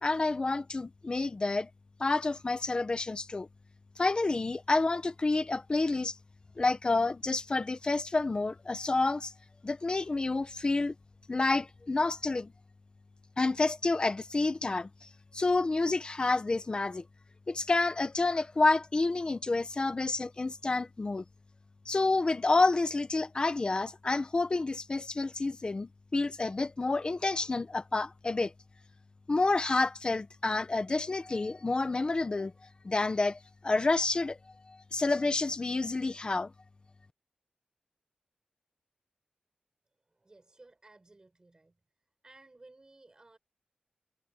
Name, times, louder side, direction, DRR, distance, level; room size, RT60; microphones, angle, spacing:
voice 1, 0.0-1.7 2.0-3.5 4.0-6.1 6.6-9.3 9.6-10.9 11.3-12.5 13.4-14.9 15.3-17.0 17.5-21.2 21.8-28.5 29.3-32.5 32.8-34.4 34.7-36.5, left 3 dB, 35° left, 1.3 m, -29 dB
voice 2, 40.1-41.7 42.2-43.4, right 2 dB, 30° right, 5.2 m, -57 dB
wide cardioid pair, 120°, 3 cm